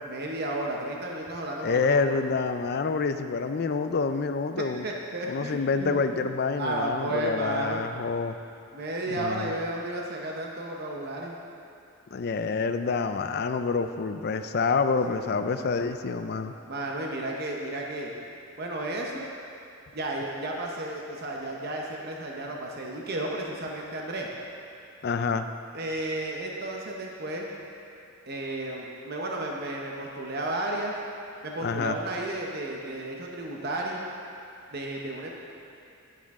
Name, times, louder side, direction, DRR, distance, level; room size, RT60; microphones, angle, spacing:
voice 1, 0.1-2.2 4.8-6.0 6.6-7.8 8.7-11.4 15.1-15.7 16.7-18.1 18.6-19.2 19.9-24.3 25.7-27.5 28.3-31.0 31.4-34.0 34.7-35.3, right 1 dB, 45° right, -1 dB, 0.9 m, -33 dB
voice 2, 1.6-4.9 5.3-8.4 9.1-9.5 12.1-16.5 25.0-25.5 31.6-32.0, left 4 dB, 50° left, 8 dB, 0.4 m, -27 dB
10.0 x 10.0 x 3.6 m, 2.6 s
head